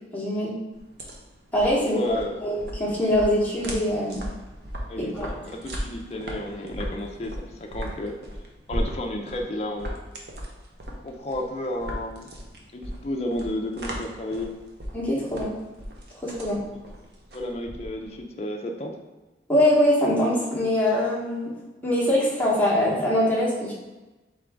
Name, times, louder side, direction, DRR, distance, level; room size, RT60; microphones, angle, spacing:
voice 1, 0.1-0.5 1.5-2.0 2.4-4.2 5.0-5.3 14.9-15.5 16.2-16.6 19.5-21.5 21.8-23.7, left 1 dB, 10° left, -6 dB, 1.0 m, -23 dB
sound 1, 0.7-18.2, equal, 65° right, 0.7 m, -37 dB
voice 2, 1.9-2.4 4.9-8.2 8.7-10.0 11.0-12.3 12.7-14.6 17.3-19.0, left 1 dB, 35° left, 1 dB, 0.4 m, -32 dB
3.7 x 3.6 x 3.4 m, 1.1 s
head